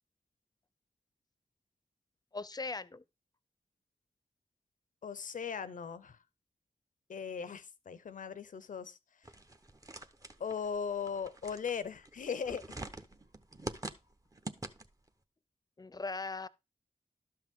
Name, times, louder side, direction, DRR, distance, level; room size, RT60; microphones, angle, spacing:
voice 1, 2.3-3.0 15.8-16.5, left 3 dB, 30° left, 0.6 m, -39 dB
voice 2, 5.0-6.2 7.1-9.0 10.4-12.8, left 6 dB, 85° left, 0.7 m, -38 dB
sound 1, 9.2-15.1, right 2 dB, 25° right, 0.9 m, -46 dB
12.0 x 5.6 x 3.6 m
cardioid pair, 45°, 13 cm